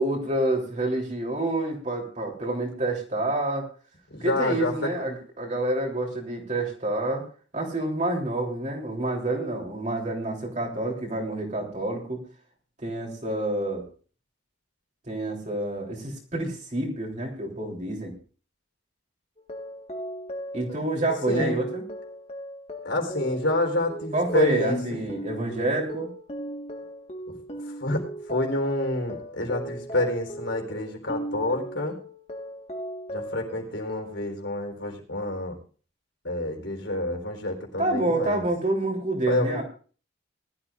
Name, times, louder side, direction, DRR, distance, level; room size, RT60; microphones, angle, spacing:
voice 1, 0.0-3.7 4.2-7.2 7.5-12.2 12.8-13.8 15.1-18.1 20.5-21.8 24.1-26.1 37.8-39.6, right 2 dB, 40° right, 0 dB, 3.3 m, -28 dB
voice 2, 4.1-4.9 21.2-21.6 22.8-25.0 27.3-27.4 27.8-28.0 28.3-31.9 33.1-35.5 36.2-38.5 39.3-39.6, left 1 dB, 70° left, 1 dB, 4.0 m, -28 dB
sound 1, 19.4-34.2, equal, 30° left, 1.5 m, -38 dB
20.5 x 13.0 x 2.5 m, 0.39 s
head